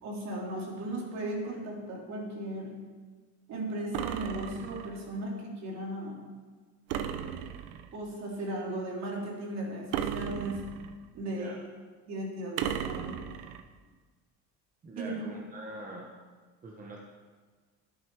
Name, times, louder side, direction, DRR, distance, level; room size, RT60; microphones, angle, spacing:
voice 1, 0.0-2.7 3.5-6.2 7.9-10.7 11.1-11.6 12.1-13.2 15.0-15.2, right 1 dB, 55° right, -2 dB, 3.2 m, -36 dB
sound 1, 3.9-5.0 6.9-8.0 9.9-11.0 12.6-13.6, right 9 dB, 80° right, 0.8 m, -35 dB
voice 2, 11.2-11.6 14.8-16.1 16.6-17.0, right 1 dB, 25° right, -1 dB, 1.2 m, -43 dB
11.5 x 9.1 x 4.8 m, 1.5 s
cardioid pair, 130°, 33 cm